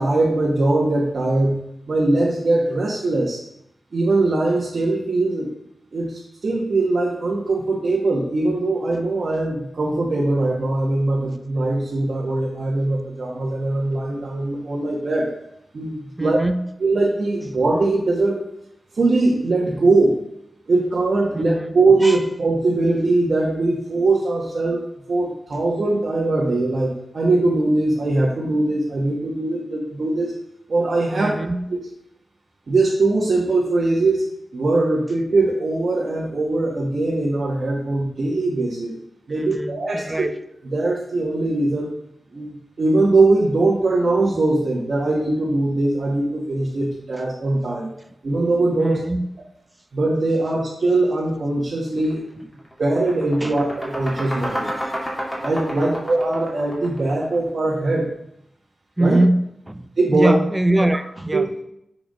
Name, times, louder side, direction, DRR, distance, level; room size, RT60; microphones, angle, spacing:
voice 1, 0.0-1.6 1.9-3.4 3.9-5.5 5.9-15.3 15.7-16.4 16.8-18.4 18.9-20.2 20.7-30.3 30.7-31.4 32.7-34.2 34.5-38.9 39.3-40.2 40.6-41.9 42.3-47.9 48.2-49.0 49.9-52.3 52.8-54.7 55.4-58.1 59.0-59.2 60.0-60.3 61.3-61.5, right 2 dB, 60° right, -4 dB, 1.5 m, -21 dB
voice 2, 16.2-16.6 21.3-21.8 22.0-22.2 31.2-31.7 39.3-40.4 48.8-49.3 53.4-53.6 54.1-55.0 55.7-56.0 59.0-61.6, right 1 dB, 15° right, 9 dB, 0.5 m, -23 dB
sound 1, 52.0-52.2 52.5-57.5, equal, 20° left, 2.4 m, -30 dB
7.5 x 4.8 x 5.2 m, 0.78 s
wide cardioid pair, 110°, 0 cm